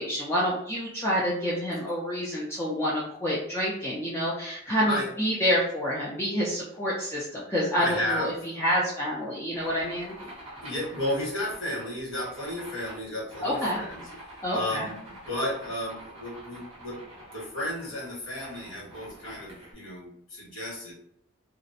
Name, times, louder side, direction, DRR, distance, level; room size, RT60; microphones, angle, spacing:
voice 1, 0.0-10.1 13.4-13.8 14.4-14.9, equal, 10° left, -6 dB, 0.3 m, -28 dB
voice 2, 7.8-8.4 10.6-14.1 14.5-15.0 15.3-17.0 17.3-20.9, left 1 dB, 80° left, -4 dB, 1.3 m, -33 dB
sound 1, 9.5-19.7, right 1 dB, 30° right, 0.8 m, -46 dB
2.4 x 2.0 x 2.6 m, 0.71 s
head